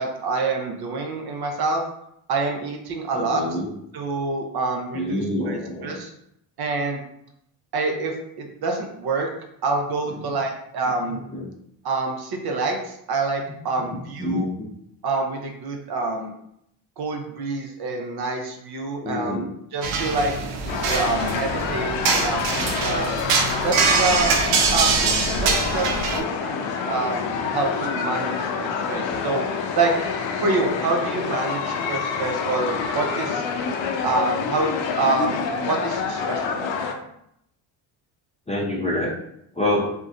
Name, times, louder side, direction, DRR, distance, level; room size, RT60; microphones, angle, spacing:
voice 1, 0.0-1.8 2.3-3.4 3.9-6.1 6.6-7.0 7.7-9.3 9.6-11.2 11.8-14.5 15.0-16.3 17.0-19.4 19.7-20.3 20.9-23.2 23.6-24.3 24.7-25.1 25.4-29.5 29.7-29.9 30.4-33.5 34.0-34.7 35.0-36.7, right 3 dB, 50° right, 2 dB, 0.6 m, -26 dB
voice 2, 3.1-3.7 4.9-6.0 10.2-10.3 11.3-11.5 13.8-14.7 19.0-19.5 38.5-39.1 39.5-39.9, left 1 dB, 15° left, -4 dB, 0.4 m, -26 dB
sound 1, 19.8-26.2, right 4 dB, 85° right, 0.6 m, -23 dB
sound 2, 20.7-36.9, left 6 dB, 65° left, 0.5 m, -27 dB
2.6 x 2.2 x 2.4 m, 0.75 s
supercardioid pair, 75°, 49 cm